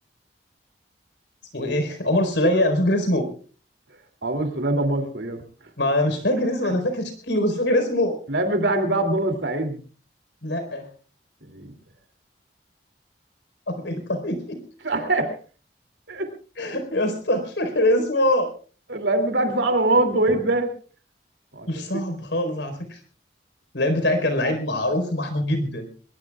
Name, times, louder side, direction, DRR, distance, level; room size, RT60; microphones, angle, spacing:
voice 1, 1.5-3.3 5.8-8.2 10.4-10.9 13.7-14.6 16.6-18.5 21.7-23.0 23.7-25.9, left 1 dB, 85° left, 8 dB, 4.3 m, -23 dB
voice 2, 4.2-5.4 8.3-9.8 11.4-11.7 14.8-15.4 16.1-16.3 18.9-20.7 21.5-21.7, right 2 dB, 85° right, 6 dB, 2.8 m, -23 dB
22.5 x 21.5 x 2.4 m, 0.39 s
head